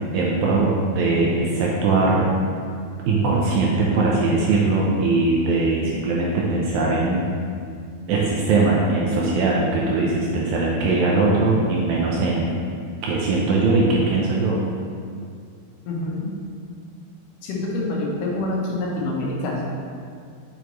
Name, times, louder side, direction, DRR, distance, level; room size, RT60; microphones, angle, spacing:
voice 1, 0.1-2.3 3.1-7.2 8.1-12.5 13.0-14.6, right 3 dB, 80° right, -3 dB, 2.2 m, -20 dB
voice 2, 15.8-16.3 17.4-19.6, left 2 dB, 80° left, -3 dB, 3.0 m, -26 dB
6.9 x 6.3 x 3.0 m, 2.2 s
omnidirectional pair, 4.7 m